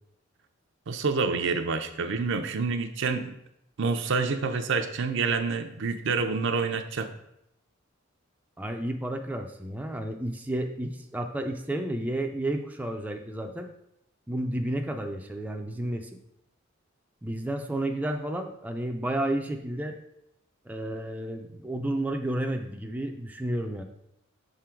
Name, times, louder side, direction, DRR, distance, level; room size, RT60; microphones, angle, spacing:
voice 1, 0.9-3.3 3.8-7.1, right 4 dB, 65° right, 7 dB, 0.5 m, -27 dB
voice 2, 8.6-13.7 14.3-16.1 17.2-20.0 20.7-23.8, right 1 dB, 10° right, 3 dB, 0.4 m, -31 dB
6.7 x 3.7 x 4.4 m, 0.79 s
head